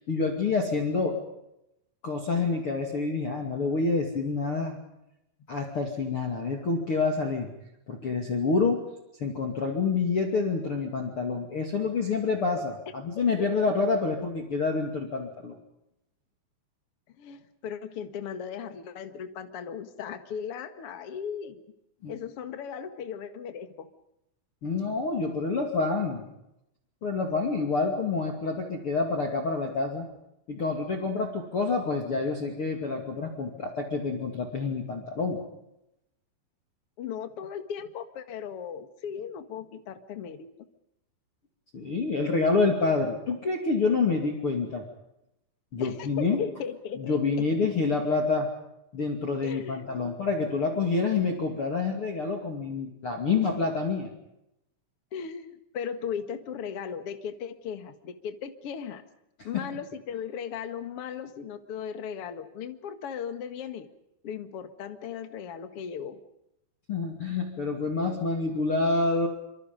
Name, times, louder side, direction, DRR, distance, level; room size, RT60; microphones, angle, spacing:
voice 1, 0.1-1.2 2.0-4.8 5.5-7.5 7.9-8.8 9.2-15.6 22.0-22.1 24.6-26.3 27.0-30.1 30.5-35.4 41.7-44.8 45.7-46.4 47.0-48.5 48.9-54.1 59.5-59.6 66.9-69.3, left 4 dB, 35° left, 1 dB, 2.6 m, -27 dB
voice 2, 13.1-13.5 17.2-21.6 22.1-23.9 37.0-40.5 45.8-47.2 49.4-50.2 55.1-59.0 59.4-63.9 64.2-66.2, left 7 dB, 80° left, 8 dB, 1.3 m, -37 dB
27.5 x 26.0 x 5.3 m, 0.84 s
omnidirectional pair, 5.5 m